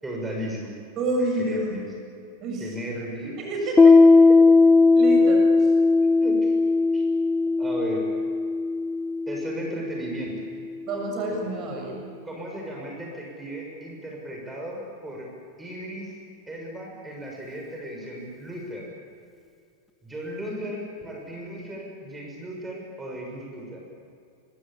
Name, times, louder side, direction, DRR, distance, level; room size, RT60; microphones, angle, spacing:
voice 1, 0.0-0.7 1.4-1.8 2.6-3.8 6.2-6.6 6.9-7.0 7.6-8.1 9.3-10.5 12.2-15.3 15.6-16.1 16.5-18.8 20.0-23.8, right 1 dB, 10° right, -1 dB, 6.6 m, -35 dB
voice 2, 1.0-1.8 2.4-2.8 3.4-3.7 4.9-5.7 10.9-12.1, right 2 dB, 35° right, 1 dB, 6.9 m, -28 dB
Piano, 3.8-11.0, left 3 dB, 10° left, 1.0 m, -18 dB
24.5 x 24.5 x 8.7 m, 2.4 s
figure-of-eight pair, 90°, 0 cm